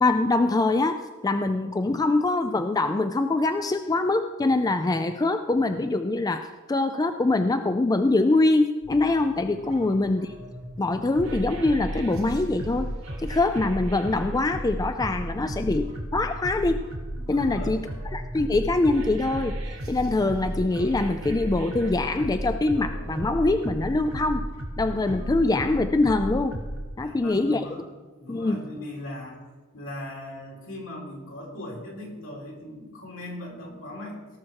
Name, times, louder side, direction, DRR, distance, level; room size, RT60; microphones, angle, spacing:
voice 1, 0.0-10.3 10.8-12.9 13.2-15.9 16.1-16.8 17.3-17.8 18.1-19.6 19.9-24.4 24.8-26.6 27.0-27.6 28.3-28.6, left 2 dB, 20° left, 8 dB, 0.4 m, -24 dB
sound 1, 8.8-26.8, right 1 dB, 80° right, 2.2 m, -34 dB
voice 2, 17.3-17.8 27.0-27.8 28.2-34.2, left 1 dB, 70° left, -1 dB, 3.2 m, -39 dB
17.5 x 6.2 x 4.7 m, 1.3 s
head